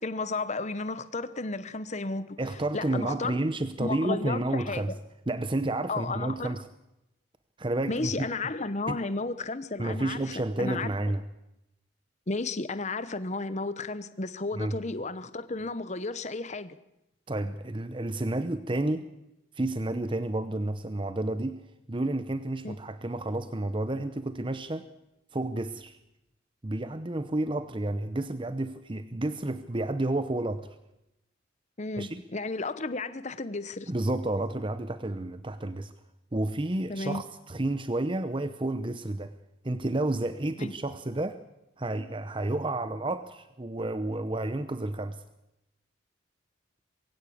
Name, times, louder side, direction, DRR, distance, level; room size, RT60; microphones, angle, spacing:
voice 1, 0.0-2.4 2.7-3.4 3.8-4.9 5.9-6.6 7.9-10.9 12.3-16.8 22.6-22.8 31.8-33.9 36.9-37.2 40.6-40.7, left 3 dB, 35° left, 0.9 m, -33 dB
voice 2, 2.4-4.9 5.3-6.7 7.6-8.3 8.9-9.0 9.8-11.2 14.5-14.8 17.3-19.1 19.5-21.6 21.9-24.9 25.3-26.0 26.6-30.7 32.0-32.2 33.9-35.9 36.3-39.3 39.6-41.4 41.8-45.2, right 2 dB, 25° right, 0.8 m, -30 dB
22.5 x 16.5 x 8.5 m
head